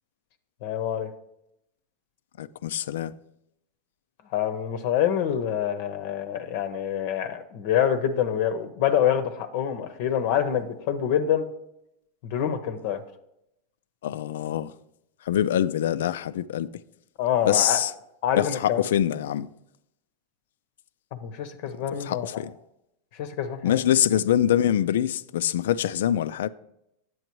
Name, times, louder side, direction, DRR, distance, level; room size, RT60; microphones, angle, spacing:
voice 1, 0.6-1.1 4.3-11.5 12.2-13.0 17.2-17.8 18.2-18.9 21.2-22.4 23.2-23.8, left 9 dB, 60° left, 0.7 m, -26 dB
voice 2, 2.4-3.1 14.0-14.7 15.3-16.7 17.5-17.9 18.4-19.5 21.9-22.5 23.6-26.5, left 11 dB, 85° left, 0.3 m, -24 dB
9.3 x 7.7 x 3.0 m
supercardioid pair, 135°, 0 cm